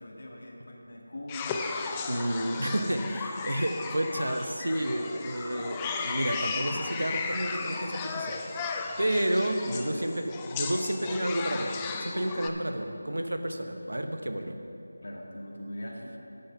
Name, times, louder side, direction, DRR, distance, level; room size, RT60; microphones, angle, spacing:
voice 1, 0.0-2.3 2.7-3.1 9.6-10.0 15.0-16.3, left 1 dB, 65° left, -1 dB, 1.8 m, -42 dB
sound 1, 1.3-12.5, left 5 dB, 15° left, 0.3 m, -35 dB
voice 2, 2.1-14.6, right 1 dB, 90° right, 6 dB, 0.9 m, -31 dB
9.7 x 7.0 x 5.5 m, 2.9 s
figure-of-eight pair, 170°, 0 cm